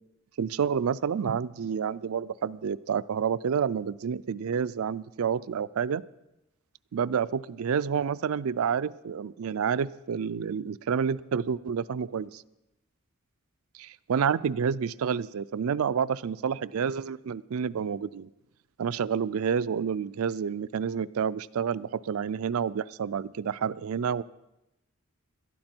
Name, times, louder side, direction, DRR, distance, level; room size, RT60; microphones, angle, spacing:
voice 1, 0.4-6.0 6.9-12.4 13.7-18.3 18.8-24.2, right 7 dB, 75° right, 17 dB, 0.4 m, -29 dB
18.0 x 12.5 x 4.5 m, 0.92 s
head